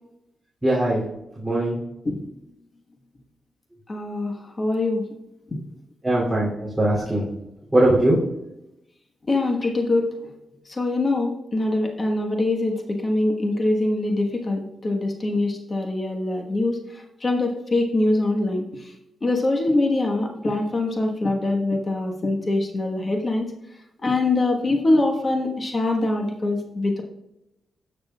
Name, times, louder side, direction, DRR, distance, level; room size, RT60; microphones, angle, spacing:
voice 1, 0.6-1.0 1.4-1.8 6.0-7.3 7.7-8.2, right 1 dB, 5° right, -8 dB, 2.7 m, -20 dB
voice 2, 3.9-5.0 5.5-5.6 9.3-10.1 10.7-16.8 17.2-18.6 19.2-23.5 24.0-27.0, left 2 dB, 35° left, 2 dB, 1.2 m, -23 dB
12.5 x 6.7 x 2.3 m, 0.87 s
cardioid pair, 95°, 0 cm